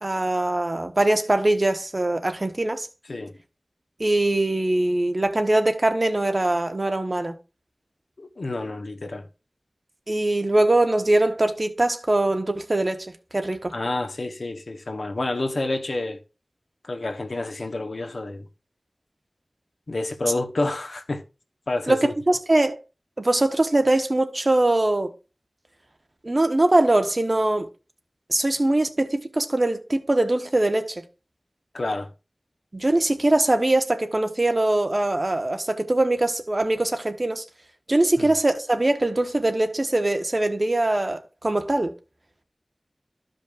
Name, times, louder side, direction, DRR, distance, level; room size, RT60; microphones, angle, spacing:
voice 1, 0.0-2.9 4.0-7.4 10.1-13.1 13.3-13.7 21.9-22.8 23.2-25.1 26.2-27.7 28.3-31.0 32.7-37.4 37.9-41.9, right 2 dB, 45° right, 1.1 m, -22 dB
voice 2, 8.2-9.3 13.7-16.2 16.9-18.5 19.9-21.2 21.7-22.1 31.7-32.1 38.2-38.3, left 2 dB, 80° left, 1.0 m, -29 dB
14.0 x 5.2 x 2.5 m
wide cardioid pair, 65°, 0 cm